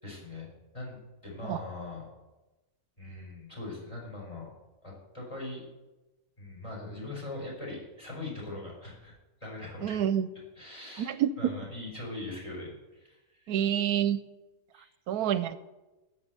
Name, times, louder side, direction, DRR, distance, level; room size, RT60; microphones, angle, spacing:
voice 1, 0.0-2.1 3.0-4.5 4.8-5.7 6.4-9.1 9.4-10.0 10.6-13.7 14.7-14.9, left 2 dB, 20° left, -3 dB, 5.5 m, -41 dB
voice 2, 9.8-10.3 11.0-11.3 13.5-14.2 15.1-15.6, right 10 dB, 80° right, 13 dB, 1.1 m, -27 dB
13.0 x 6.4 x 9.3 m, 1.1 s
omnidirectional pair, 1.6 m